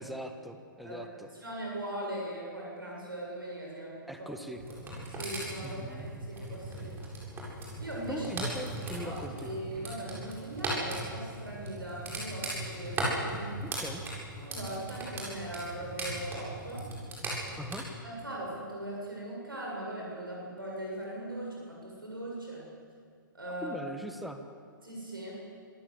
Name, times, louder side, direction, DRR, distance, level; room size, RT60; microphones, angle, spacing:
voice 1, 0.0-1.3 4.1-4.6 5.6-6.3 8.1-9.5 13.6-14.0 17.6-17.8 23.6-24.4, equal, ahead, 6 dB, 1.6 m, -41 dB
voice 2, 1.4-4.0 5.1-7.0 7.8-8.2 8.9-13.6 14.4-16.9 18.0-22.6 23.3-23.8 24.8-25.4, right 1 dB, 80° right, -3 dB, 7.5 m, -40 dB
sound 1, 4.6-17.8, right 1 dB, 20° right, 7.6 m, -38 dB
26.5 x 17.5 x 8.4 m, 2.2 s
figure-of-eight pair, 115°, 11 cm